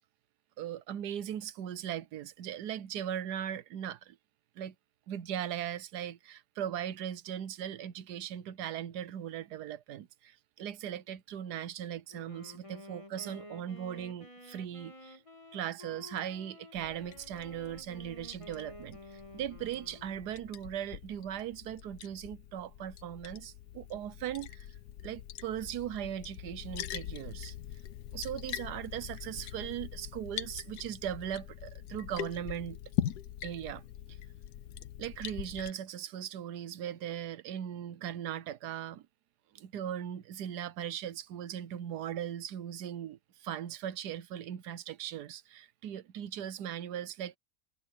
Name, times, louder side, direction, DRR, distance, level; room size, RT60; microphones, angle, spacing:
voice 1, 0.6-4.2 4.6-4.7 5.1-15.2 15.5-24.7 25.0-27.5 28.1-32.8 33.4-33.8 35.0-39.1 39.5-47.3, right 10 dB, 85° right, 1.4 m, -39 dB
Wind instrument woodwind instrument, 12.1-20.7, left 1 dB, 20° left, 2.8 m, -52 dB
Liquid, 16.8-35.7, left 11 dB, 80° left, 1.3 m, -42 dB
omnidirectional pair, 1.7 m